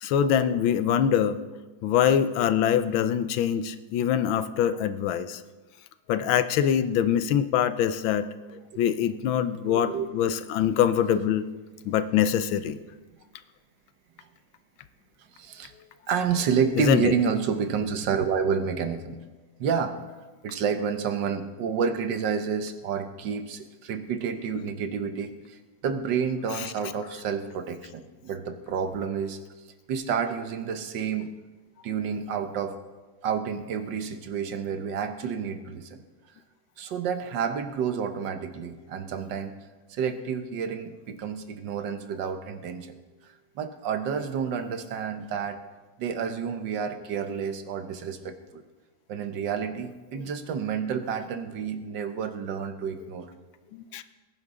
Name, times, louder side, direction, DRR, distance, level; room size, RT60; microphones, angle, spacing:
voice 1, 0.0-1.4 1.8-5.4 6.1-8.3 8.8-11.5 11.8-12.8 16.8-17.1 53.7-54.0, left 9 dB, 90° left, 12 dB, 1.5 m, -24 dB
voice 2, 9.7-10.1 15.3-15.7 16.1-19.2 19.6-19.9 20.4-29.4 29.9-31.3 31.8-32.8 33.2-36.0 36.8-39.6 39.9-43.0 43.2-45.6 46.0-48.6 49.1-53.3, right 6 dB, 70° right, 9 dB, 1.5 m, -29 dB
19.5 x 10.5 x 3.7 m, 1.2 s
omnidirectional pair, 2.1 m